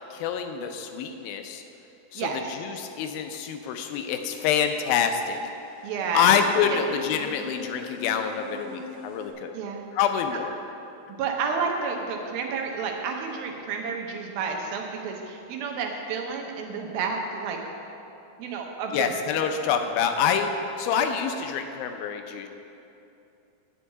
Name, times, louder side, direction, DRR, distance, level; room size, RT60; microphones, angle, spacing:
voice 1, 0.1-1.6 2.1-5.4 6.1-9.5 9.9-10.5 18.9-20.5 20.8-22.5, left 7 dB, 80° left, 6 dB, 2.4 m, -26 dB
voice 2, 2.2-2.5 5.8-6.3 6.7-6.9 9.5-9.8 11.2-17.6 18.4-19.1, right 5 dB, 80° right, 2 dB, 2.7 m, -30 dB
sound 1, 3.6-9.3, left 2 dB, 50° left, 2.1 m, -42 dB
9.9 x 5.5 x 8.2 m, 2.8 s
omnidirectional pair, 4.3 m